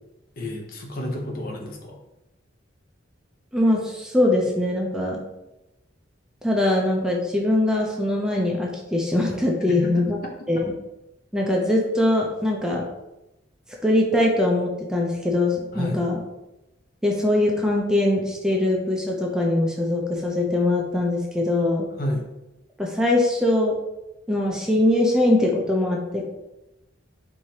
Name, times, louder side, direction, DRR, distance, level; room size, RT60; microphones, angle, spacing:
voice 1, 0.4-2.0 9.7-10.0 15.7-16.0 22.0-22.2, left 1 dB, 50° left, 1 dB, 0.7 m, -30 dB
voice 2, 3.5-5.2 6.4-10.2 10.5-10.7 11.3-12.8 13.8-16.2 17.0-21.9 22.8-23.7 24.3-26.3, left 1 dB, 5° right, -1 dB, 0.5 m, -22 dB
4.8 x 2.7 x 2.8 m, 0.95 s
head